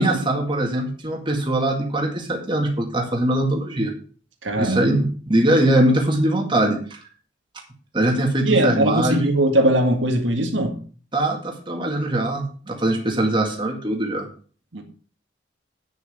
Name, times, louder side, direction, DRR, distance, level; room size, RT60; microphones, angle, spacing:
voice 1, 0.0-3.9 4.6-6.8 7.9-9.3 11.1-14.3, right 1 dB, 25° right, 1 dB, 2.1 m, -21 dB
voice 2, 4.4-5.0 8.4-10.8 14.7-14.8, right 1 dB, 75° right, 3 dB, 1.9 m, -20 dB
9.0 x 6.7 x 6.6 m, 0.43 s
head